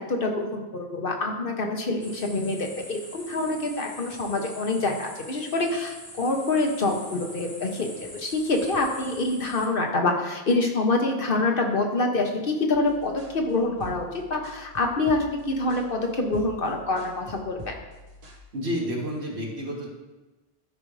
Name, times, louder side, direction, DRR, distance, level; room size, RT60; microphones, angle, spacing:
voice 1, 0.0-7.9 8.1-17.7, left 2 dB, 60° left, 2 dB, 1.3 m, -26 dB
sound 1, 2.0-9.7, equal, 15° left, 1.3 m, -43 dB
sound 2, 12.7-18.4, equal, 40° right, 1.2 m, -46 dB
voice 2, 18.5-19.9, equal, 80° right, -2 dB, 2.0 m, -30 dB
13.0 x 5.0 x 3.3 m, 1.1 s
omnidirectional pair, 1.1 m